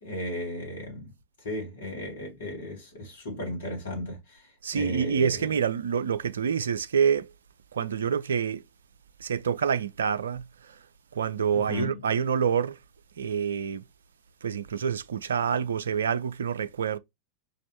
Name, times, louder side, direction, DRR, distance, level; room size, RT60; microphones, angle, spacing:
voice 1, 0.0-1.1 1.4-5.6 11.5-12.1, left 1 dB, 60° left, 2.3 m, -35 dB
voice 2, 4.6-7.3 7.7-8.6 9.2-10.4 11.1-12.8 13.2-13.8 14.4-17.0, right 7 dB, 65° right, 0.4 m, -27 dB
5.1 x 3.1 x 2.8 m
figure-of-eight pair, 90°, 0 cm